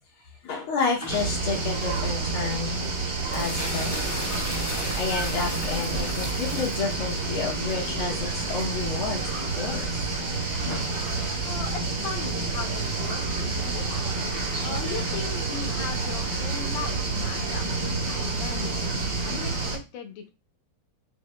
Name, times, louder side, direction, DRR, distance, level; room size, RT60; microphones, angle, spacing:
voice 1, 0.4-2.8 3.3-4.2 4.9-10.0 10.6-10.9 13.9-14.2, left 4 dB, 90° left, -6 dB, 2.2 m, -30 dB
sound 1, 1.0-19.2, left 1 dB, 15° left, 0.6 m, -41 dB
sound 2, 1.1-19.8, right 3 dB, 55° right, 2.0 m, -29 dB
voice 2, 11.4-14.0 14.6-17.7 18.1-18.7 19.2-20.3, left 6 dB, 70° left, 5 dB, 1.5 m, -38 dB
6.9 x 2.9 x 2.2 m, 0.28 s
omnidirectional pair, 2.3 m